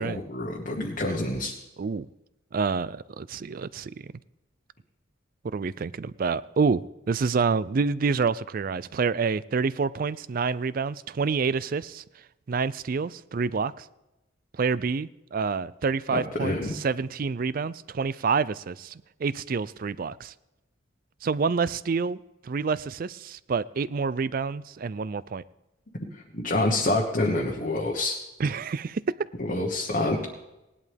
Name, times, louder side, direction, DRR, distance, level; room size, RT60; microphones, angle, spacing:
voice 1, 0.0-1.5 16.1-16.7 26.1-28.2 29.4-30.2, left 2 dB, 40° left, 1.3 m, -27 dB
voice 2, 2.5-4.1 5.5-6.8 7.1-12.0 12.5-13.9 14.6-20.3 21.2-22.2 22.4-25.4 28.4-29.0, right 5 dB, 45° right, 0.4 m, -28 dB
18.0 x 11.0 x 3.5 m
head